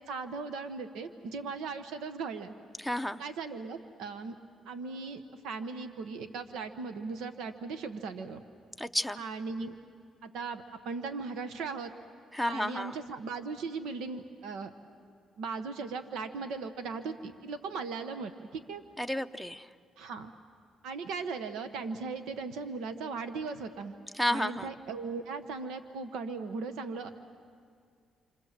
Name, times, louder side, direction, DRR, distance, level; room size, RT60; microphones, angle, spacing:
voice 1, 0.1-2.5 3.2-4.4 4.6-8.4 9.2-9.7 10.2-11.9 12.4-14.7 15.4-18.8 20.0-20.3 20.8-23.9 24.3-27.1, right 4 dB, 90° right, 9 dB, 1.1 m, -38 dB
voice 2, 2.8-3.2 8.8-9.2 12.3-13.0 19.0-19.7 24.1-24.7, left 1 dB, ahead, 11 dB, 0.7 m, -31 dB
28.0 x 26.0 x 7.5 m, 2.2 s
cardioid pair, 90°, 0 cm